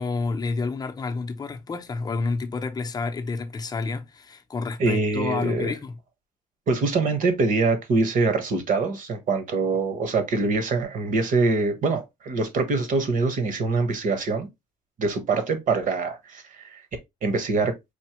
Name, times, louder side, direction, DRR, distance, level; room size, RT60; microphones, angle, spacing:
voice 1, 0.0-6.0, left 4 dB, 25° left, 0.6 m, -29 dB
voice 2, 4.8-5.7 6.7-14.5 15.0-16.8 17.2-17.7, right 3 dB, 50° right, 1.2 m, -24 dB
4.3 x 2.7 x 3.0 m
cardioid pair, 110°, 17 cm